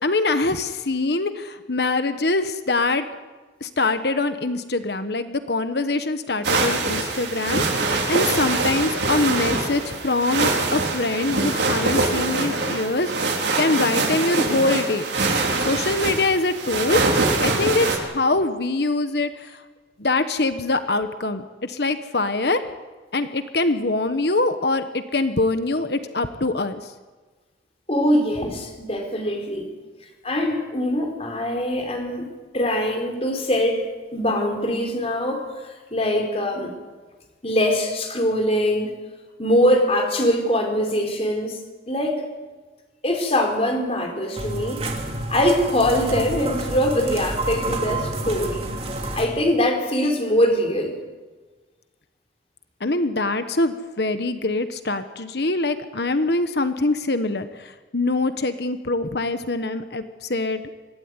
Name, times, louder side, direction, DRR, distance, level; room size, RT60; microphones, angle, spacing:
voice 1, 0.0-3.0 3.6-15.0 15.7-17.0 17.4-19.6 20.0-22.6 23.1-26.8 52.8-60.6, left 2 dB, 60° left, 10 dB, 1.2 m, -24 dB
sound 1, 6.4-18.0, right 3 dB, 70° right, 4.5 m, -23 dB
voice 2, 27.9-29.7 30.2-35.5 35.9-36.7 37.4-38.9 39.4-41.6 41.9-42.2 43.0-44.9 45.3-48.7 49.1-51.0, left 1 dB, 35° left, 3 dB, 4.5 m, -22 dB
sound 2, 44.4-49.3, right 2 dB, 35° right, 3.3 m, -29 dB
25.0 x 16.0 x 9.8 m, 1.3 s
head